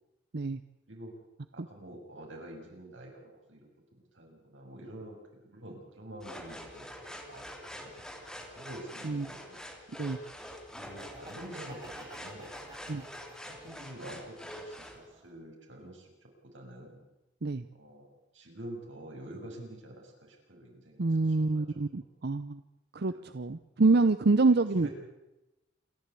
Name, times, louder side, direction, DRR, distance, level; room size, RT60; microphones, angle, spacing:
voice 1, 1.5-6.9 7.3-9.6 10.7-12.7 13.4-17.1 17.7-21.8 23.1-23.2 24.5-24.9, right 1 dB, 90° right, 1 dB, 6.8 m, -47 dB
sound 1, 6.2-15.0, equal, 5° left, 3.1 m, -45 dB
Laughter, 10.7-13.9 14.3-15.4, right 1 dB, 25° right, 5.9 m, -52 dB
voice 2, 21.0-22.6 22.9-24.9, right 3 dB, 60° right, 12 dB, 0.7 m, -26 dB
28.0 x 13.0 x 8.4 m, 0.94 s
head